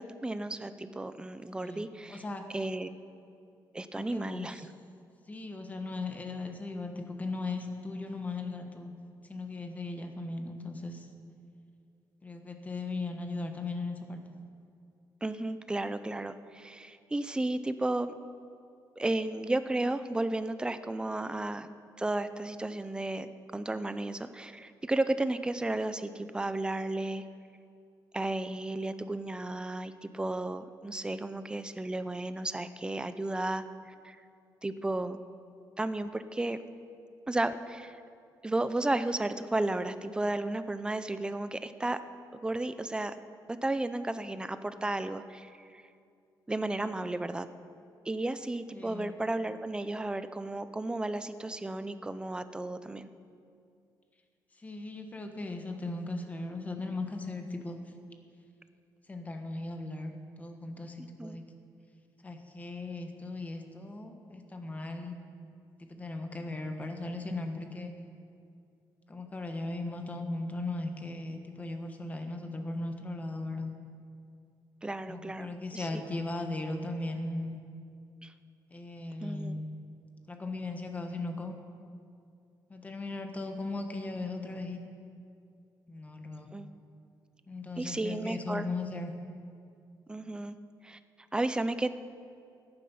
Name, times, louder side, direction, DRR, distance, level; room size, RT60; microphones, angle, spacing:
voice 1, 0.0-2.2 2.5-2.9 3.7-4.7 15.2-18.1 19.0-21.7 22.0-27.2 28.1-33.6 34.0-34.2 34.6-35.2 35.8-36.6 37.3-38.0 38.4-42.0 42.3-43.2 43.5-45.8 46.5-47.5 48.1-53.1 61.2-61.4 74.8-76.0 78.2-78.3 79.2-79.6 86.5-86.7 87.8-88.7 90.1-90.6 90.8-91.0 91.3-91.9, right 2 dB, 10° right, 11 dB, 0.5 m, -33 dB
voice 2, 1.6-2.5 3.9-4.6 5.3-8.9 9.3-11.1 12.2-14.2 48.7-49.1 54.6-57.8 59.1-61.4 62.2-65.1 65.8-67.9 69.1-73.7 75.0-77.6 78.7-79.7 80.3-81.5 82.7-84.8 85.9-86.5 87.5-89.1, left 2 dB, 20° left, 5 dB, 1.2 m, -37 dB
13.5 x 11.0 x 5.6 m, 2.4 s
cardioid pair, 135°, 8 cm